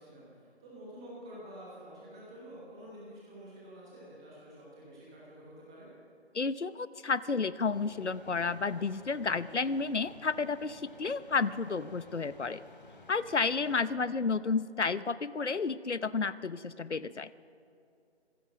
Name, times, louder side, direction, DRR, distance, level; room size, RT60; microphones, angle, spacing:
voice 1, 0.0-5.9 13.8-14.1, equal, 5° right, -6 dB, 1.1 m, -49 dB
voice 2, 6.3-12.6 13.1-17.3, left 4 dB, 85° left, 16 dB, 0.9 m, -31 dB
sound 1, 7.7-13.8, left 2 dB, 50° left, 3.0 m, -54 dB
25.5 x 16.5 x 6.2 m, 2.4 s
figure-of-eight pair, 165°, 34 cm